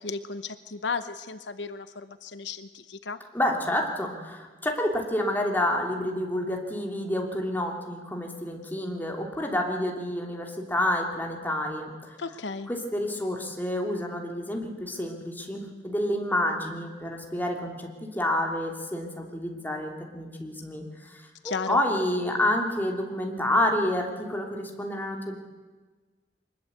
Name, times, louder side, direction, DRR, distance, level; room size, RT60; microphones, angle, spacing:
voice 1, 0.0-3.2 12.2-12.7 21.4-21.8, left 4 dB, 80° left, 11 dB, 0.9 m, -34 dB
voice 2, 3.3-12.2 12.7-25.4, left 1 dB, 10° left, 1 dB, 3.0 m, -29 dB
23.5 x 21.0 x 8.2 m, 1.3 s
head